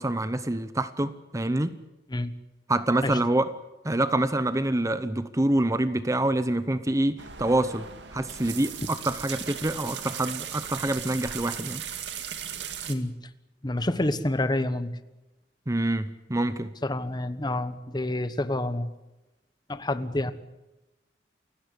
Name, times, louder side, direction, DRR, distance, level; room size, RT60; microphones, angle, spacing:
voice 1, 0.0-1.7 2.7-3.5 3.8-7.9 8.1-11.8 15.7-16.7, right 1 dB, 20° right, 13 dB, 0.8 m, -26 dB
sound 1, 7.2-12.9, right 8 dB, 85° right, 2.2 m, -37 dB
voice 2, 13.6-15.0 16.8-18.9 19.7-20.3, left 1 dB, 25° left, 12 dB, 1.2 m, -28 dB
29.0 x 16.5 x 8.3 m, 1.0 s
head